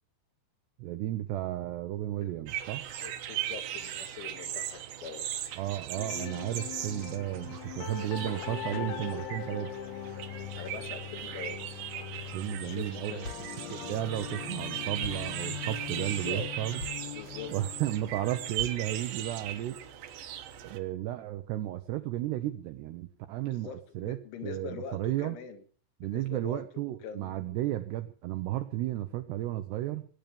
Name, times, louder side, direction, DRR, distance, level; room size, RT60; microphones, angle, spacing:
voice 1, 0.8-2.8 5.6-9.7 12.3-13.3 13.7-16.8 17.5-19.8 20.7-24.2 24.4-25.4 26.0-30.1, right 14 dB, 85° right, 9 dB, 2.4 m, -33 dB
sound 1, 2.5-20.8, right 11 dB, 70° right, 2.2 m, -39 dB
voice 2, 3.0-5.5 8.7-9.1 10.6-11.6 12.6-13.4 16.0-16.8 17.1-17.5 23.5-25.6 26.0-27.6, left 7 dB, 70° left, 7 dB, 3.9 m, -43 dB
sound 2, 6.0-19.9, left 12 dB, 90° left, 4.1 m, -42 dB
sound 3, 12.4-12.9 13.2-17.7 18.2-19.1, left 3 dB, 50° left, 2.2 m, -47 dB
20.5 x 9.2 x 6.9 m, 0.43 s
omnidirectional pair, 6.0 m